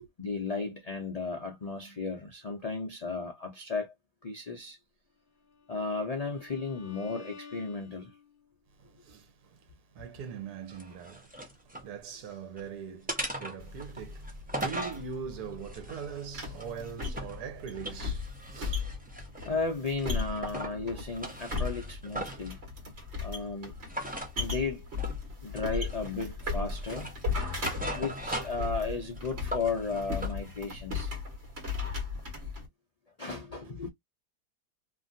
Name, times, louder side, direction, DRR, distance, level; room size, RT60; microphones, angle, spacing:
voice 1, 0.2-3.9 4.2-4.8 5.7-8.1 19.4-22.6 23.2-23.8 24.4-24.9 25.4-27.1 27.9-31.1 33.2-33.9, left 4 dB, 75° left, 0.3 m, -34 dB
Bowed string instrument, 5.4-8.5, left 5 dB, 45° left, 0.7 m, -51 dB
voice 2, 8.7-19.0, right 7 dB, 70° right, 1.4 m, -42 dB
sound 1, 10.7-11.9 12.3-12.7 13.1-15.0 15.6-17.4 17.7-19.6 20.0-20.8 21.1-22.5 23.9-24.3 25.0-25.2 25.5-26.3 26.7-28.7 29.0-30.4, right 1 dB, 10° right, 0.5 m, -39 dB
sound 2, 13.6-32.7, left 4 dB, 40° right, 1.5 m, -37 dB
2.9 x 2.6 x 2.5 m
omnidirectional pair, 1.7 m